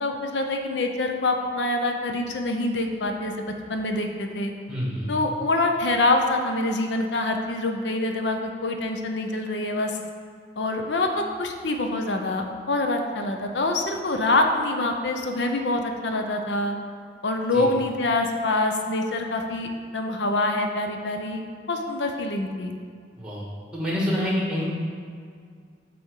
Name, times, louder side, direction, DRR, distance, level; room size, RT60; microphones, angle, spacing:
voice 1, 0.0-4.5 5.1-10.0 10.6-16.8 17.2-21.4 21.7-22.7, left 2 dB, 85° left, 4 dB, 0.7 m, -25 dB
voice 2, 4.7-5.1 17.5-17.6 23.2-23.5 23.7-24.7, equal, 5° right, -6 dB, 2.1 m, -27 dB
8.0 x 4.2 x 6.6 m, 2.1 s
head